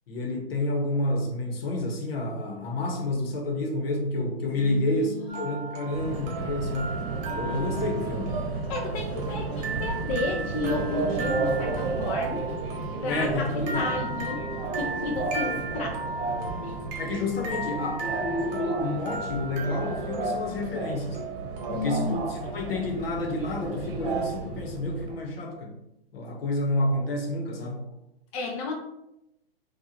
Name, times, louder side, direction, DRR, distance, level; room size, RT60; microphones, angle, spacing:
voice 1, 0.1-6.9 7.3-8.4 13.1-14.0 17.0-21.2 21.7-25.7 26.1-27.8, left 2 dB, 70° left, 2 dB, 1.1 m, -29 dB
voice 2, 4.6-5.5 8.7-12.5 13.0-16.0 16.5-16.8 21.7-22.2 28.3-28.7, left 3 dB, 35° left, 0 dB, 0.5 m, -33 dB
sound 1, 5.3-21.8, right 3 dB, 20° right, 0.7 m, -37 dB
Subway metro underground, 5.9-25.2, right 3 dB, 55° right, 0.8 m, -32 dB
4.5 x 2.4 x 2.8 m, 0.86 s
hypercardioid pair, 140°, 31 cm